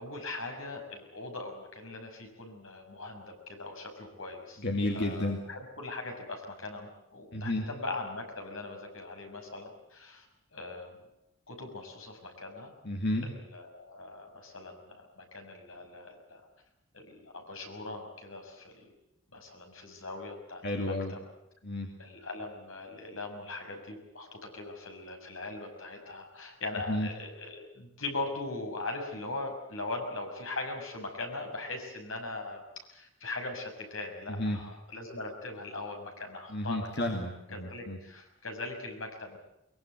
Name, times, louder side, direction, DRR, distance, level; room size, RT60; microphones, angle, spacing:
voice 1, 0.0-4.6 4.9-10.3 10.5-11.0 11.5-12.7 13.2-16.4 16.9-18.9 19.3-21.2 22.0-32.6 32.9-36.9 37.5-39.4, left 2 dB, 75° left, 3 dB, 6.4 m, -40 dB
voice 2, 4.6-5.4 7.3-7.6 12.8-13.3 20.6-21.1 21.6-21.9 26.9-27.1 34.3-34.6 36.5-38.0, left 1 dB, 55° left, 3 dB, 2.4 m, -31 dB
23.0 x 22.0 x 8.0 m, 0.85 s
head